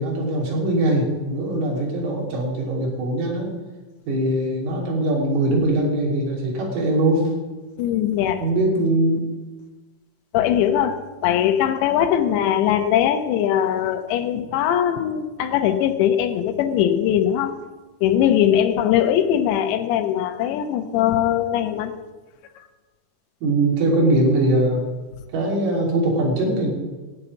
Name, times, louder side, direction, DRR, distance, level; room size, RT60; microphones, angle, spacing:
voice 1, 0.0-3.5 4.1-7.3 8.4-9.2 23.4-24.8 25.3-26.7, right 1 dB, 90° right, -3 dB, 5.5 m, -21 dB
voice 2, 7.8-8.4 10.3-11.0 11.2-17.5 18.0-21.9, left 10 dB, 75° left, 6 dB, 3.1 m, -20 dB
16.5 x 5.6 x 9.1 m, 1.2 s
omnidirectional pair, 5.3 m